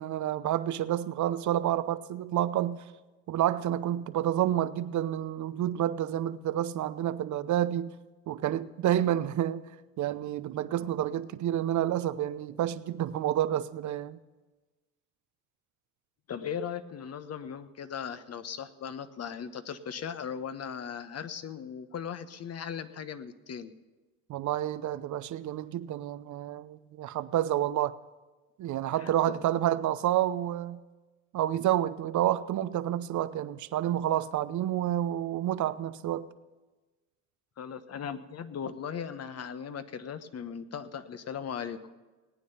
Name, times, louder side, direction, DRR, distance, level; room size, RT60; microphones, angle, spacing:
voice 1, 0.0-2.8 3.3-7.9 8.3-9.7 10.0-14.2 24.3-28.0 28.6-30.8 31.3-36.3, right 12 dB, 50° right, 0.8 m, -29 dB
voice 2, 16.3-23.7 27.4-27.5 28.9-29.4 37.6-41.9, left 7 dB, 40° left, 1.1 m, -38 dB
18.5 x 9.3 x 5.7 m
hypercardioid pair, 75°, 39 cm